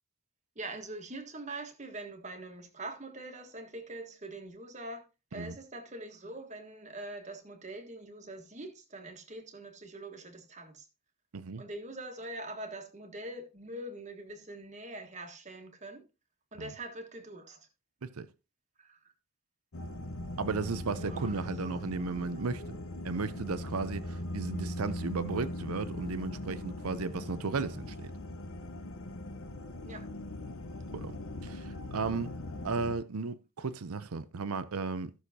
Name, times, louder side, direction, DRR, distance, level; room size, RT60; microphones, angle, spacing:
voice 1, 0.5-5.0 5.3-10.9 11.6-16.0 16.5-17.7 18.8-19.0 21.0-22.3 29.8-30.0, right 2 dB, 30° right, 1.4 m, -44 dB
voice 2, 11.3-11.6 16.6-16.7 18.0-18.3 20.4-22.8 23.0-28.1 30.9-31.1 31.4-32.3 32.6-35.1, right 4 dB, 85° right, 0.6 m, -35 dB
sound 1, 19.7-32.9, left 1 dB, 70° left, 0.9 m, -40 dB
14.5 x 6.4 x 2.8 m
head